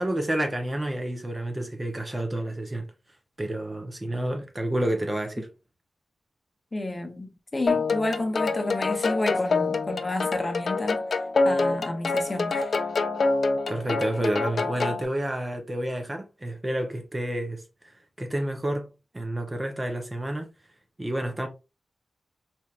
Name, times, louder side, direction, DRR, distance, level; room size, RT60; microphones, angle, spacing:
voice 1, 0.0-2.9 3.4-5.5 13.7-17.6 18.2-20.5 21.0-21.5, right 1 dB, 20° right, 0.7 m, -29 dB
voice 2, 6.7-11.0 11.4-12.7, left 2 dB, 25° left, 0.9 m, -30 dB
sound 1, 7.7-15.0, left 3 dB, 55° left, 0.4 m, -26 dB
4.3 x 3.1 x 2.4 m
wide cardioid pair, 125°, 0 cm